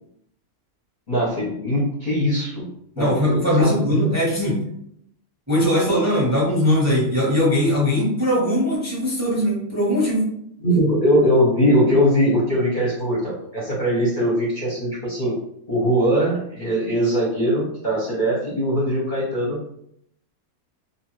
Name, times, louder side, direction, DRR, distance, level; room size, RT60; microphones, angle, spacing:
voice 1, 1.1-2.7 3.0-3.1 3.6-3.7 4.0-4.1 10.6-15.4 15.7-19.6, equal, 45° left, -6 dB, 0.7 m, -21 dB
voice 2, 3.0-4.6 5.5-10.2, left 1 dB, 15° right, -5 dB, 0.7 m, -20 dB
2.8 x 2.5 x 3.0 m, 0.72 s
omnidirectional pair, 1.6 m